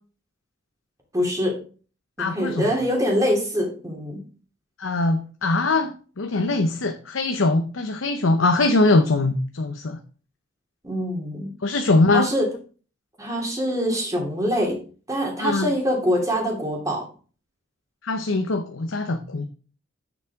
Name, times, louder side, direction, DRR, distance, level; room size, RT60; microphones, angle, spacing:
voice 1, 1.1-1.6 2.2-4.2 10.8-11.5 12.1-12.5 13.2-14.7 15.1-17.1, equal, 15° right, -1 dB, 2.8 m, -24 dB
voice 2, 2.2-2.7 4.8-10.0 11.6-12.3 15.4-15.7 18.0-19.5, left 2 dB, 80° left, 7 dB, 0.8 m, -22 dB
9.6 x 7.2 x 3.6 m, 0.39 s
head